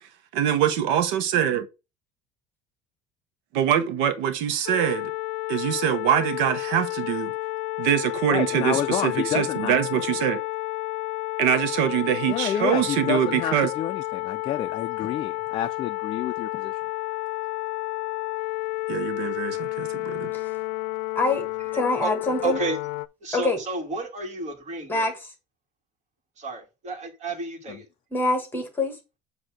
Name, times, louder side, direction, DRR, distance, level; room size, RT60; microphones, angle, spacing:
voice 1, 0.3-1.7 3.5-5.1 5.5-7.3 7.8-10.4 11.4-13.7 18.9-20.3, right 9 dB, 80° right, 1.1 m, -24 dB
sound 1, 4.7-23.1, left 20 dB, 75° left, 0.5 m, -31 dB
voice 2, 8.3-9.8 12.3-16.8 27.7-27.8, left 10 dB, 25° left, 0.4 m, -29 dB
voice 3, 21.1-21.4 21.7-22.6 23.3-23.6 24.9-25.2 28.1-29.0, left 2 dB, 10° left, 1.4 m, -25 dB
voice 4, 22.4-22.8 23.2-25.1 26.4-27.9, right 2 dB, 35° right, 2.0 m, -31 dB
7.8 x 2.8 x 6.0 m
cardioid pair, 175°, 19 cm